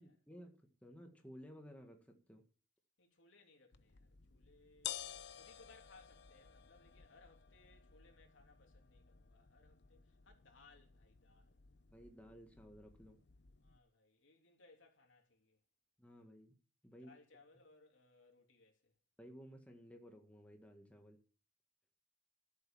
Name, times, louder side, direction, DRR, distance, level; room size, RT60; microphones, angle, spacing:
voice 1, 0.0-2.5 11.9-13.2 16.0-16.6 16.8-17.1 19.2-21.2, equal, 5° left, 1.8 m, -56 dB
voice 2, 3.0-5.0 5.3-11.7 13.6-15.6 17.0-18.9, left 3 dB, 80° left, 3.2 m, -66 dB
sound 1, 3.7-13.8, left 10 dB, 60° left, 0.7 m, -53 dB
13.0 x 8.2 x 7.2 m
head